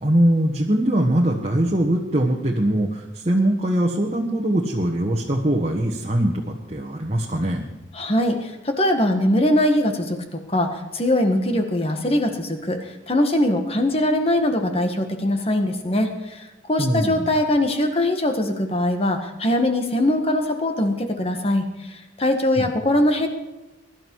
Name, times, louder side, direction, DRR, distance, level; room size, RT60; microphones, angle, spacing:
voice 1, 0.0-7.7 16.8-17.3 22.6-22.7, right 1 dB, 30° right, -1 dB, 1.4 m, -22 dB
voice 2, 7.9-23.3, left 1 dB, 30° left, 5 dB, 1.6 m, -22 dB
21.5 x 12.0 x 4.8 m, 1.1 s
head